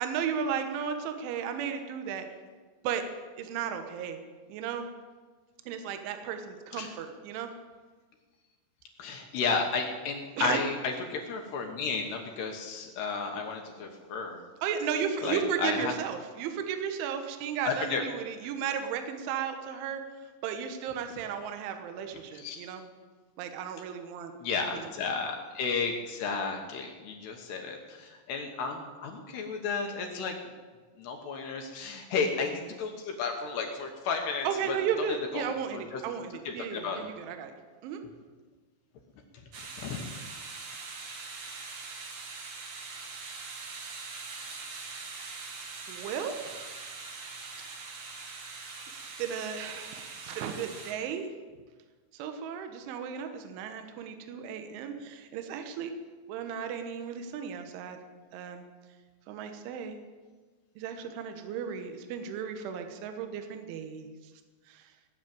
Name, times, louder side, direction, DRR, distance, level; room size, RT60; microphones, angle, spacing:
voice 1, 0.0-2.3 2.8-3.0 3.4-4.2 4.5-4.9 5.7-7.5 10.4-10.6 14.6-20.0 20.4-22.9 23.4-24.3 24.7-24.9 34.5-37.5 37.8-38.0 45.9-46.7 48.9-51.3 52.1-55.9 56.3-58.0 58.3-58.6 59.3-60.0 60.8-64.1 64.7-64.8, right 7 dB, 75° right, 7 dB, 3.5 m, -34 dB
voice 2, 9.0-14.4 15.2-15.9 17.7-18.0 22.4-22.6 24.4-30.3 31.0-34.8 35.3-36.0 36.5-37.0 39.8-40.0, left 5 dB, 70° left, 2 dB, 2.8 m, -33 dB
sound 1, 39.5-50.9, right 4 dB, 55° right, 2.3 m, -42 dB
18.0 x 7.3 x 9.0 m, 1.4 s
omnidirectional pair, 5.8 m